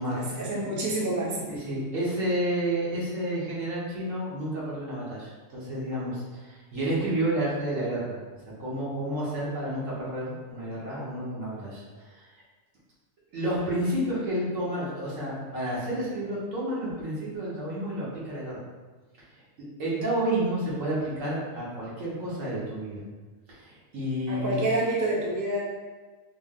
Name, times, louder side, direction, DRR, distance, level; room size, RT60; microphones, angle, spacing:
voice 1, 0.1-1.5 24.3-25.6, right 1 dB, 25° right, -4 dB, 0.4 m, -28 dB
voice 2, 1.5-8.2 8.5-12.3 13.3-18.6 19.8-23.0 23.5-24.6, right 1 dB, 70° right, -7 dB, 1.5 m, -30 dB
4.0 x 2.1 x 3.6 m, 1.3 s
omnidirectional pair, 1.4 m